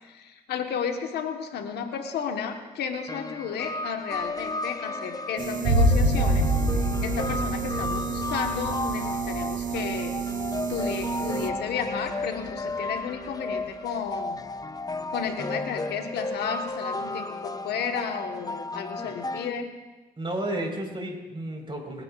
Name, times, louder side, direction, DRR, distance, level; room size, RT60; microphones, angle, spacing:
voice 1, 0.0-10.1 10.7-14.4 15.1-19.7, left 6 dB, 80° left, 5 dB, 1.3 m, -33 dB
sound 1, 3.1-19.5, left 2 dB, 20° left, 0.7 m, -34 dB
sound 2, 5.4-11.5, right 8 dB, 50° right, 0.8 m, -32 dB
sound 3, 5.6-13.0, equal, 80° right, 2.2 m, -27 dB
voice 2, 20.2-22.0, right 1 dB, 30° right, 1 dB, 4.3 m, -32 dB
26.0 x 9.5 x 2.4 m, 1.2 s
supercardioid pair, 55°, 17 cm